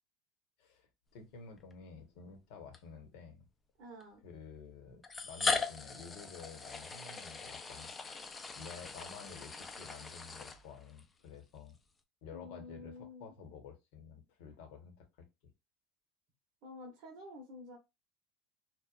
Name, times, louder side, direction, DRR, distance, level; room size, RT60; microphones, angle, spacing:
voice 1, 0.6-3.5 4.2-7.9 8.5-11.8 12.2-15.3, left 5 dB, 70° left, 0.9 m, -51 dB
sound 1, 1.6-1.7 2.7-2.8 4.0-4.1 5.0-11.0, left 4 dB, 20° left, 0.4 m, -39 dB
voice 2, 3.8-4.2 12.3-13.3 16.6-17.8, left 2 dB, 60° right, 0.7 m, -49 dB
2.9 x 2.1 x 2.3 m
supercardioid pair, 100°, 0 cm